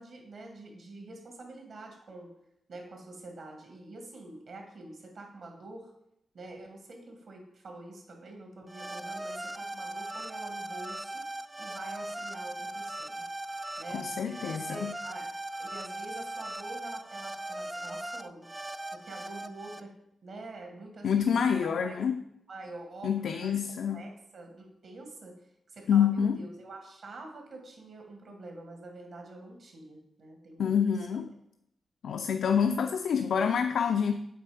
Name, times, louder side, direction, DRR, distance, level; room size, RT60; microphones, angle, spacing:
voice 1, 0.0-2.3 2.7-5.9 6.3-11.2 11.6-13.2 13.8-15.3 15.6-18.5 18.9-19.9 20.2-22.0 22.5-23.6 23.9-25.4 25.7-31.2, right 2 dB, 65° right, 1.7 m, -46 dB
sound 1, 8.7-19.8, right 1 dB, 10° right, 0.3 m, -39 dB
voice 2, 13.9-15.0 21.0-22.2 23.0-24.0 25.9-26.4 30.6-31.3 32.0-34.1, left 7 dB, 85° left, 0.4 m, -27 dB
7.8 x 4.4 x 4.9 m
wide cardioid pair, 140°, 0 cm